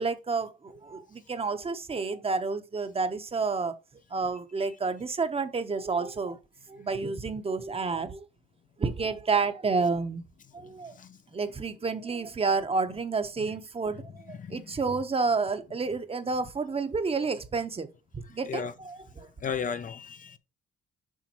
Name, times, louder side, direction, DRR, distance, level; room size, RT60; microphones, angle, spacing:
voice 1, 0.0-3.7 4.1-6.4 6.7-8.2 8.8-10.2 10.5-10.9 11.3-17.9 18.3-19.3, right 4 dB, 30° right, 0.9 m, -30 dB
voice 2, 14.4-14.7 18.5-18.7 19.4-20.4, left 6 dB, 40° left, 0.5 m, -35 dB
7.2 x 5.0 x 2.9 m
cardioid pair, 90°, 20 cm